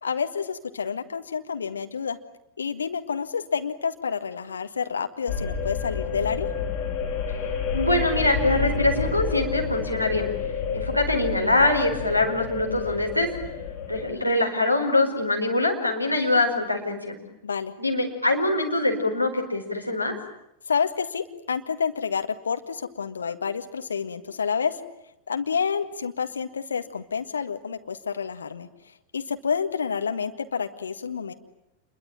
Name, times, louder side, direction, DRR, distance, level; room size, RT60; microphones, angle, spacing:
voice 1, 0.0-2.2 2.6-6.5 17.4-17.7 20.7-24.8 25.3-28.7 29.1-31.3, left 6 dB, 70° left, 7 dB, 1.8 m, -29 dB
sound 1, 5.3-14.1, left 6 dB, 35° left, 4.1 m, -30 dB
voice 2, 7.7-10.3 10.7-13.3 13.9-17.2 17.8-20.1, left 2 dB, 90° left, 1 dB, 4.7 m, -23 dB
27.5 x 22.5 x 8.9 m, 0.83 s
figure-of-eight pair, 90°, 0 cm